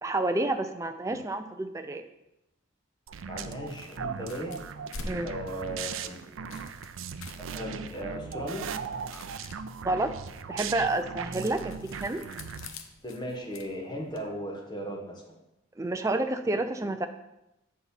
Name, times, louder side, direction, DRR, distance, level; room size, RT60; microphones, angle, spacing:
voice 1, 0.0-2.0 5.1-5.3 9.8-10.1 10.5-12.2 15.8-17.1, right 2 dB, 15° right, 7 dB, 0.4 m, -29 dB
sound 1, 3.1-12.7, right 6 dB, 75° right, 0.4 m, -38 dB
voice 2, 3.3-4.6 5.2-6.6 7.4-8.8 13.0-15.2, equal, 20° left, -1 dB, 1.3 m, -37 dB
sound 2, 4.2-14.3, left 3 dB, 85° left, 0.8 m, -48 dB
7.8 x 4.2 x 5.7 m, 0.91 s
head